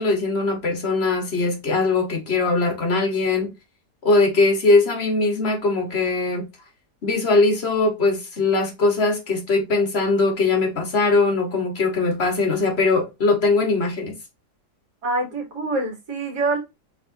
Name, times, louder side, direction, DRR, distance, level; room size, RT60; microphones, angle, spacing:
voice 1, 0.0-3.5 4.0-6.5 7.0-14.1, left 3 dB, 40° left, 1.4 m, -21 dB
voice 2, 15.0-16.6, right 2 dB, 75° right, 2.3 m, -25 dB
4.9 x 3.6 x 2.6 m
omnidirectional pair, 1.7 m